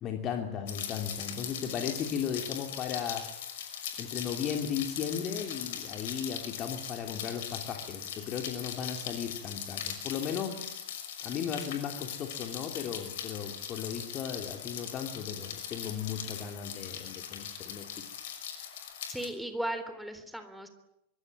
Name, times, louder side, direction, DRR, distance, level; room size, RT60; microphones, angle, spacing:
voice 1, 0.0-3.3 4.0-10.7 11.2-18.1, left 8 dB, 30° left, 4 dB, 3.0 m, -36 dB
Rain, 0.7-19.3, left 9 dB, 55° left, 6.0 m, -40 dB
voice 2, 19.1-20.7, right 1 dB, ahead, 8 dB, 3.5 m, -36 dB
24.5 x 24.5 x 9.2 m, 0.82 s
figure-of-eight pair, 90°, 0 cm